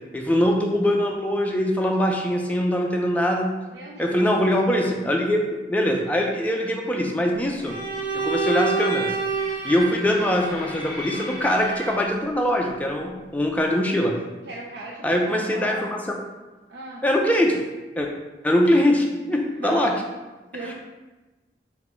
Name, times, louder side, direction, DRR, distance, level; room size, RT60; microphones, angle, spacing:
voice 1, 0.1-3.5 4.0-5.4 5.7-7.7 8.1-9.1 9.6-14.1 15.0-16.0 17.0-17.6 18.0-18.1 18.4-19.9, equal, 10° left, 0 dB, 0.4 m, -22 dB
voice 2, 3.7-4.1 14.5-15.9 16.7-17.0 19.6-19.9 20.5-20.7, right 2 dB, 70° right, -4 dB, 0.5 m, -37 dB
Bowed string instrument, 7.6-12.1, right 4 dB, 25° left, 1.4 m, -28 dB
4.2 x 2.2 x 4.3 m, 1.1 s
head